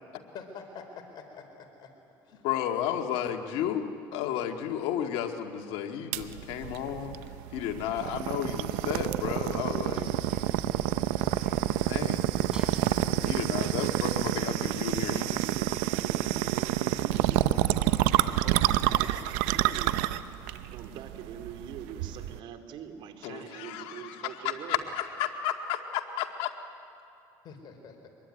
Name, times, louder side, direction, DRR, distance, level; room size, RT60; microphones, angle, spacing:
voice 1, 0.3-1.9 2.2-2.4 27.4-28.1, left 5 dB, 55° left, 4 dB, 4.5 m, -46 dB
voice 2, 2.4-7.1 7.5-10.1 11.7-12.3 13.2-15.4 23.2-26.5, left 10 dB, 75° left, 4 dB, 2.0 m, -33 dB
sound 1, 6.1-22.4, right 14 dB, 85° right, 0.7 m, -28 dB
sound 2, 8.9-14.5, right 2 dB, 10° right, 4.8 m, -46 dB
voice 3, 14.9-17.8 18.2-20.1 20.5-24.8, right 8 dB, 65° right, 7 dB, 2.6 m, -44 dB
25.0 x 21.0 x 9.8 m, 2.7 s
supercardioid pair, 95°, 9 cm